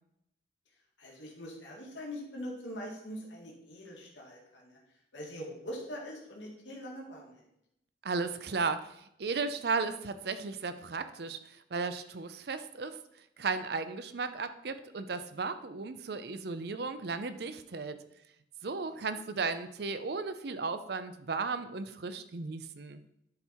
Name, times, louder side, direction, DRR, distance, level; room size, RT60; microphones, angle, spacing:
voice 1, 1.0-4.8 5.1-7.3 19.0-19.1, equal, 80° left, -2 dB, 1.9 m, -43 dB
voice 2, 8.0-13.0 13.4-18.0 18.6-23.0, right 4 dB, 55° right, 11 dB, 0.5 m, -35 dB
10.5 x 4.5 x 4.3 m, 0.79 s
head